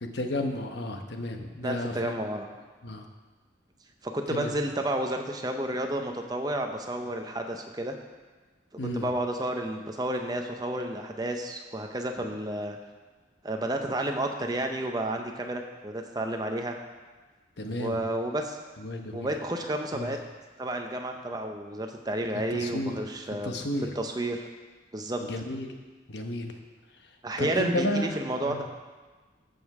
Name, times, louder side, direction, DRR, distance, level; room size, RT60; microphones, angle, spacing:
voice 1, 0.0-2.1 2.8-3.0 4.3-4.5 8.8-9.1 17.6-18.0 18.8-19.3 19.9-20.1 22.5-23.0 23.4-23.9 25.2-25.7 26.1-26.5 27.4-28.2 28.5-28.6, left 1 dB, 60° left, 4 dB, 1.0 m, -32 dB
voice 2, 1.6-2.5 4.0-8.0 8.9-12.8 13.4-16.7 17.8-18.6 19.1-20.2 20.6-23.5 24.0-24.5 24.9-25.2 27.2-28.6, right 1 dB, 20° right, 4 dB, 0.7 m, -31 dB
14.0 x 5.3 x 4.8 m, 1.3 s
head